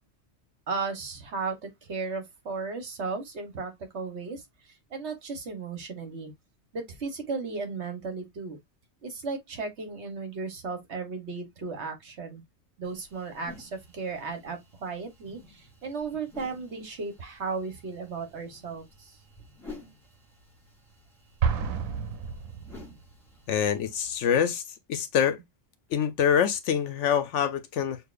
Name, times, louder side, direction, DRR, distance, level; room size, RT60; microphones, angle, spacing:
voice 1, 0.7-6.3 6.7-8.6 9.0-12.4 12.8-19.2, right 4 dB, 55° right, 1.4 m, -35 dB
sound 1, 12.8-24.4, left 2 dB, ahead, 3.4 m, -52 dB
Explosion, 21.4-23.2, right 6 dB, 85° right, 1.1 m, -30 dB
voice 2, 23.5-24.6 24.9-25.4 25.9-28.0, left 8 dB, 70° left, 0.9 m, -25 dB
6.5 x 2.6 x 2.4 m
omnidirectional pair, 1.4 m